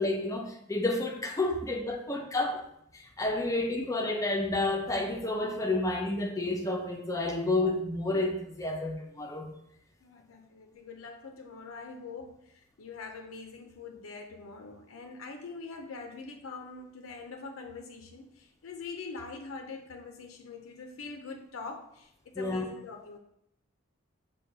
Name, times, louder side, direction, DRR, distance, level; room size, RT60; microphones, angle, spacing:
voice 1, 0.0-2.6 3.2-9.5 22.3-22.7, left 2 dB, 15° left, 1 dB, 0.5 m, -30 dB
voice 2, 10.0-23.2, left 4 dB, 75° left, 4 dB, 0.4 m, -44 dB
5.2 x 2.2 x 3.9 m, 0.76 s
head